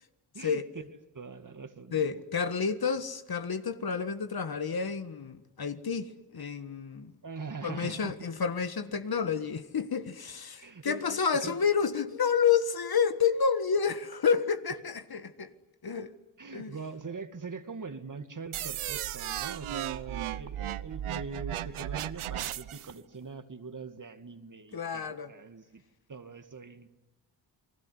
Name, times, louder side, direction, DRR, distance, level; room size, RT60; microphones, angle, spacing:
voice 1, 0.3-0.8 1.1-2.2 7.2-8.2 10.6-11.6 16.4-25.8 26.1-26.9, right 4 dB, 40° right, 2.3 m, -42 dB
voice 2, 1.9-7.1 7.6-15.5 15.8-16.1 16.5-16.7 24.7-25.3, left 6 dB, 50° left, 1.7 m, -29 dB
sound 1, 18.5-22.9, right 12 dB, 80° right, 0.9 m, -35 dB
29.5 x 19.5 x 9.7 m
cardioid pair, 60°, 48 cm